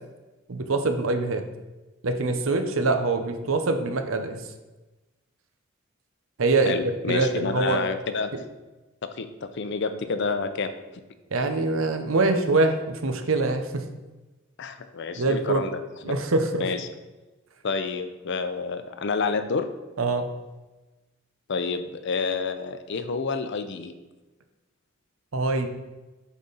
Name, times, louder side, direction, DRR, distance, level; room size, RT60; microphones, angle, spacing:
voice 1, 0.5-1.4 2.0-4.4 6.4-6.7 7.1-7.9 8.3-8.4 11.3-13.9 15.1-15.6 16.1-16.7 20.0-20.3 25.3-25.7, right 3 dB, 75° right, 7 dB, 0.8 m, -24 dB
voice 2, 6.7-8.3 9.0-10.7 14.6-16.2 16.6-16.9 17.6-19.7 21.5-23.9, left 4 dB, 60° left, 10 dB, 0.5 m, -29 dB
8.4 x 4.2 x 4.0 m, 1.1 s
head